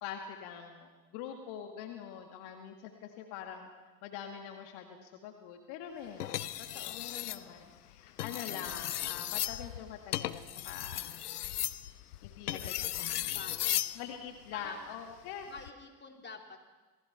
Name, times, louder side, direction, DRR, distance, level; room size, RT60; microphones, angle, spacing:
voice 1, 0.0-3.7 4.0-11.2 12.2-13.2 14.0-15.5, left 8 dB, 60° left, 5 dB, 2.1 m, -44 dB
sound 1, 6.2-7.4 8.1-14.0 15.4-15.7, left 13 dB, 80° left, 0.8 m, -36 dB
voice 2, 12.6-14.1 14.5-14.9 15.5-16.7, left 4 dB, 25° left, 3 dB, 3.6 m, -48 dB
27.0 x 19.0 x 5.8 m, 1.2 s
figure-of-eight pair, 60°, 45 cm